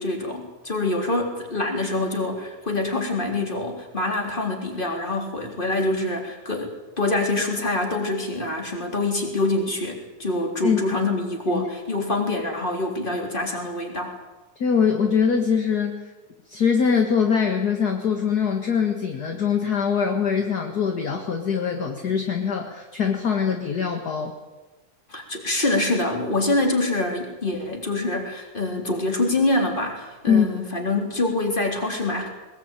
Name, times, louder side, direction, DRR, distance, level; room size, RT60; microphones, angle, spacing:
voice 1, 0.0-14.2 25.1-32.3, left 2 dB, 15° left, 2 dB, 3.7 m, -25 dB
voice 2, 14.6-16.0 16.5-24.3 30.3-30.5, left 6 dB, 40° left, 4 dB, 1.8 m, -22 dB
21.5 x 21.0 x 9.1 m, 1.2 s
omnidirectional pair, 3.4 m